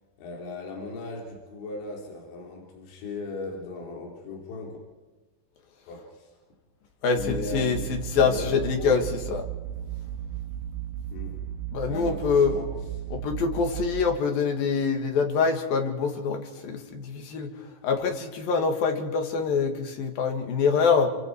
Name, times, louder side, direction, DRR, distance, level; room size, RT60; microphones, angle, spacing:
voice 1, 0.2-4.8 5.9-6.3 7.1-7.9 8.2-9.0 11.1-11.4 11.9-12.7 16.9-17.0, left 3 dB, 85° left, 0 dB, 5.5 m, -37 dB
voice 2, 7.0-9.4 11.7-12.6 13.1-21.1, left 5 dB, 60° left, 5 dB, 3.5 m, -25 dB
sound 1, 7.2-14.0, right 11 dB, 65° right, 2.9 m, -35 dB
29.0 x 25.0 x 4.7 m, 1.2 s
omnidirectional pair, 5.2 m